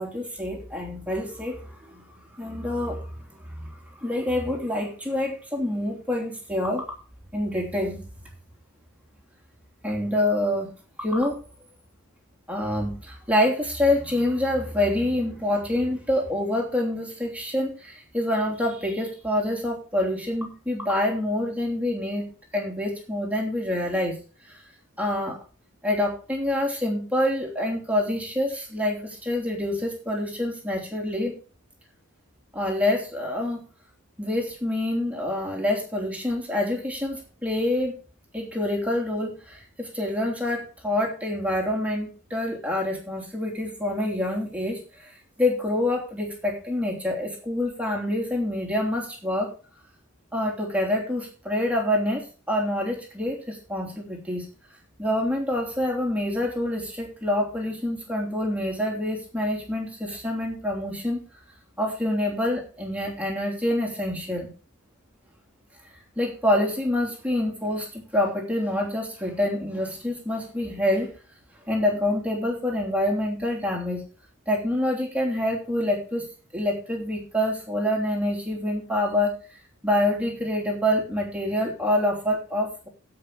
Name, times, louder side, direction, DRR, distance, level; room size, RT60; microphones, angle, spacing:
voice 1, 0.0-2.0 2.3-3.7 4.0-6.8 7.3-8.1 9.8-10.7 11.0-11.4 12.5-24.2 25.0-25.4 25.8-31.3 32.5-33.6 34.2-37.9 38.3-45.1 45.4-49.5 50.3-54.4 55.0-61.2 61.8-64.5 66.2-71.1 71.7-74.1 74.5-76.3 76.5-79.3 79.8-82.9, left 1 dB, 5° right, -1 dB, 3.2 m, -26 dB
15.5 x 5.7 x 4.8 m, 0.37 s
head